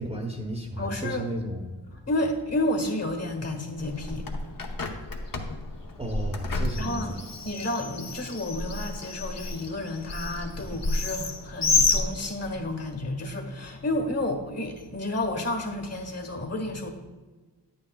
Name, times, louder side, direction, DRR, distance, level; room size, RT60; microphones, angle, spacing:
voice 1, 0.0-1.6 1.9-2.1 6.0-7.2, right 1 dB, 15° right, 0 dB, 1.0 m, -33 dB
voice 2, 0.8-1.3 1.9-4.4 5.0-5.3 6.8-16.9, left 1 dB, 35° left, 5 dB, 1.5 m, -31 dB
Bird, 3.8-12.7, left 3 dB, 50° left, 1.0 m, -30 dB
9.7 x 8.8 x 2.4 m, 1.3 s
wide cardioid pair, 75°, 43 cm